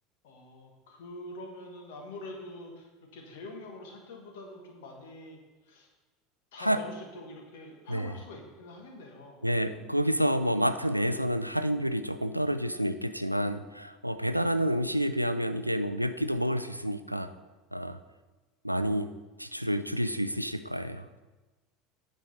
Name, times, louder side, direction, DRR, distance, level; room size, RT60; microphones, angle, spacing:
voice 1, 0.2-5.9 6.5-9.4, left 2 dB, 60° left, 2 dB, 1.5 m, -45 dB
voice 2, 9.4-17.3 17.7-18.0 18.6-19.1 19.4-21.1, equal, 90° right, 11 dB, 0.3 m, -29 dB
8.9 x 6.2 x 4.2 m, 1.2 s
figure-of-eight pair, 75°, 0 cm